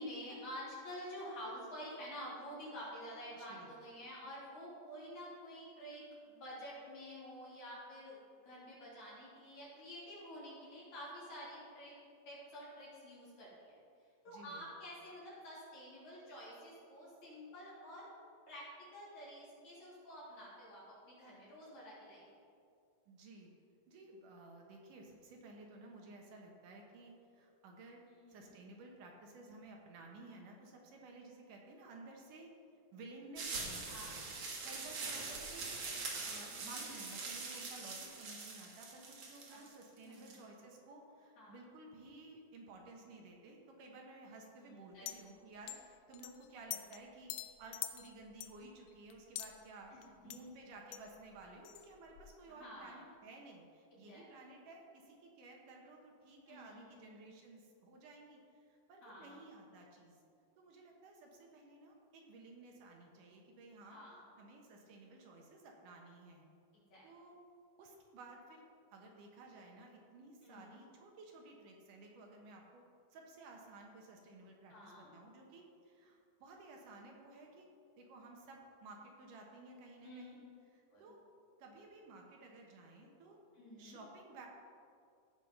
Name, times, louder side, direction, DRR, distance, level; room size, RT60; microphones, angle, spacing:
voice 1, 0.0-8.2 8.4-12.0 12.3-13.8 14.2-18.1 18.5-22.2 28.1-28.5 33.9-34.4 36.4-36.8 39.5-39.6 40.0-40.4 41.4-41.6 44.6-45.1 49.9-50.4 52.6-53.0 54.1-54.2 56.5-57.2 59.0-59.4 63.9-64.2 66.7-67.0 70.4-70.8 74.7-75.1 80.0-80.4 80.9-81.1 83.5-84.0, equal, 55° left, -8 dB, 4.6 m, -49 dB
voice 2, 3.4-3.8 14.3-14.7 23.1-23.5 23.9-28.0 28.3-32.5 32.9-34.2 34.6-35.7 36.2-60.2 60.6-64.0 64.4-66.5 67.0-67.4 67.8-68.6 68.9-72.8 73.1-77.7 78.0-80.4 80.7-81.2 81.6-83.4 83.8-84.5, right 2 dB, 70° right, 0 dB, 2.6 m, -55 dB
sound 1, 33.4-40.3, right 4 dB, 55° right, 2.4 m, -43 dB
sound 2, 45.1-45.2 45.7-45.8 46.1-47.0 47.3-49.6 50.0-50.1 50.3-50.4 50.9-51.1 51.4-52.3, left 12 dB, 80° left, 2.0 m, -44 dB
16.0 x 5.6 x 5.4 m, 2.4 s
omnidirectional pair, 4.0 m